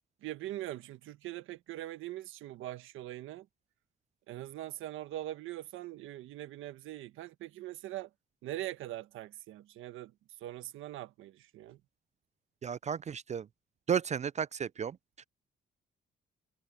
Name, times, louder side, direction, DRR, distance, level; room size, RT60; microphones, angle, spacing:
voice 1, 0.2-3.5 4.3-8.1 8.4-10.1 10.4-11.8, right 14 dB, 90° right, 1.3 m, -42 dB
voice 2, 12.6-13.5 13.9-15.0, right 7 dB, 35° right, 0.4 m, -33 dB
cardioid pair, 90°, 20 cm